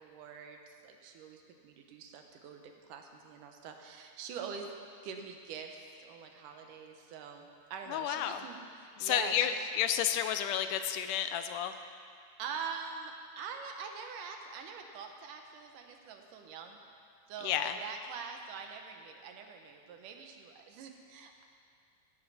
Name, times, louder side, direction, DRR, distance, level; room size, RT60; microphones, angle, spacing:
voice 1, 0.0-2.6 2.9-4.7 5.0-9.6 12.4-16.8 17.3-21.4, right 6 dB, 80° right, 4 dB, 2.6 m, -44 dB
voice 2, 7.9-8.5 9.0-11.8 17.4-17.8, left 10 dB, 80° left, 9 dB, 2.2 m, -31 dB
16.0 x 13.0 x 4.2 m, 2.2 s
omnidirectional pair, 3.7 m